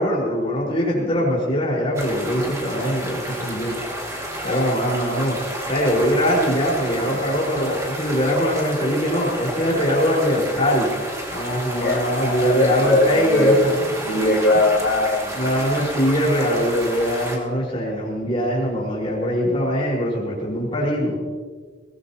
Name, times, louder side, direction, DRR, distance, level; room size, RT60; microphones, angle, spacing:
voice 1, 0.0-3.8 4.4-5.4 5.7-10.9 11.3-13.9 15.3-21.2, equal, 30° left, -4 dB, 5.0 m, -22 dB
sound 1, 1.9-17.4, equal, 15° right, 2.3 m, -31 dB
voice 2, 4.4-4.8 11.7-13.6 14.0-15.7, left 2 dB, 90° left, -7 dB, 3.5 m, -21 dB
21.5 x 18.5 x 3.0 m, 1.5 s
head